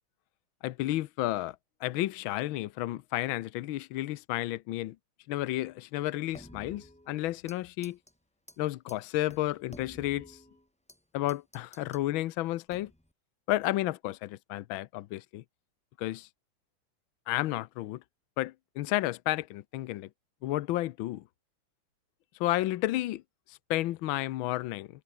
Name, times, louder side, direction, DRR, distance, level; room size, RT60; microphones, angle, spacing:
voice 1, 0.6-5.0 5.3-8.0 8.6-10.4 11.1-12.9 13.5-15.4 16.0-16.3 17.3-18.0 18.4-20.1 20.4-21.2 22.4-23.2 23.5-24.9, left 16 dB, 85° left, 1.5 m, -32 dB
sound 1, 6.3-7.6 7.8-8.1 8.5-8.6 8.9-9.0 9.3-11.0 11.3-12.1 12.7-13.1, left 1 dB, 5° left, 1.5 m, -51 dB
omnidirectional pair, 2.2 m